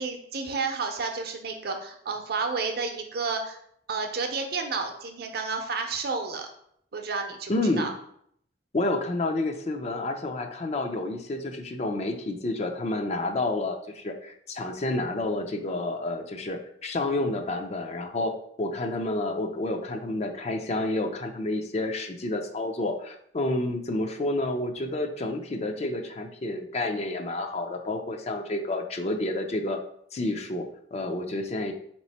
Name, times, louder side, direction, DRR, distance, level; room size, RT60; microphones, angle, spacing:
voice 1, 0.0-3.6 3.9-6.5 6.9-7.9, right 4 dB, 60° right, 5 dB, 0.6 m, -31 dB
voice 2, 7.5-7.9 8.7-29.8 30.1-31.7, left 2 dB, 40° left, 4 dB, 0.5 m, -29 dB
4.1 x 3.0 x 4.1 m, 0.68 s
head